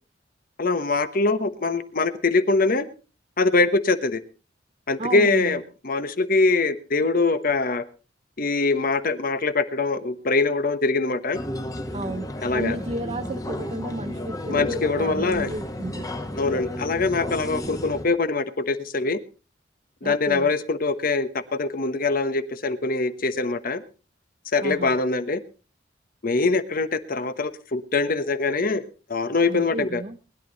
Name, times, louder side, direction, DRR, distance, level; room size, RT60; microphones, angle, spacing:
voice 1, 0.6-2.8 3.4-4.2 4.9-7.8 8.4-11.4 12.4-12.8 14.5-15.5 16.4-19.2 20.0-23.8 24.5-25.4 26.2-30.0, left 3 dB, 50° left, 11 dB, 1.1 m, -23 dB
voice 2, 5.0-5.6 11.9-16.1 20.0-20.5 24.6-25.0 29.5-30.2, right 1 dB, 35° right, 5 dB, 1.0 m, -32 dB
sound 1, 11.3-18.1, left 1 dB, 20° left, 1.4 m, -33 dB
20.5 x 11.0 x 4.0 m, 0.34 s
head